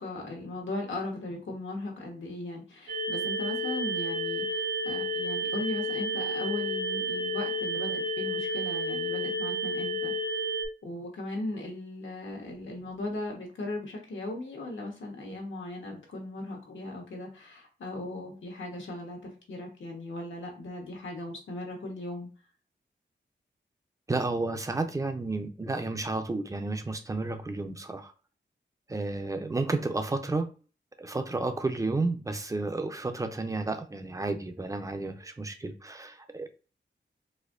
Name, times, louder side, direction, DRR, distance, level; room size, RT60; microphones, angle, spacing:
voice 1, 0.0-10.1 10.8-22.3, left 2 dB, 85° left, 1.3 m, -38 dB
sound 1, 2.9-10.7, right 1 dB, 65° right, 1.2 m, -31 dB
voice 2, 24.1-28.1 28.9-30.5 31.0-36.5, right 3 dB, 15° right, 0.4 m, -31 dB
4.2 x 2.6 x 2.5 m
wide cardioid pair, 165°, 19 cm